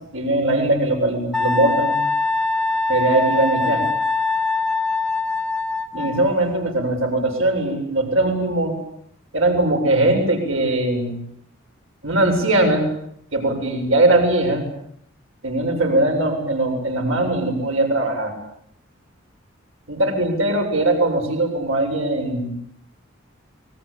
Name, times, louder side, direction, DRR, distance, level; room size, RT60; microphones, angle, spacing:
voice 1, 0.1-1.9 2.9-3.9 5.9-8.8 9.3-11.2 12.0-12.9 13.3-14.6 15.4-18.3 19.9-22.7, right 2 dB, 70° right, 3 dB, 7.9 m, -20 dB
Wind instrument woodwind instrument, 1.3-6.3, left 3 dB, 5° left, 1.3 m, -22 dB
29.5 x 23.0 x 8.9 m, 0.70 s
head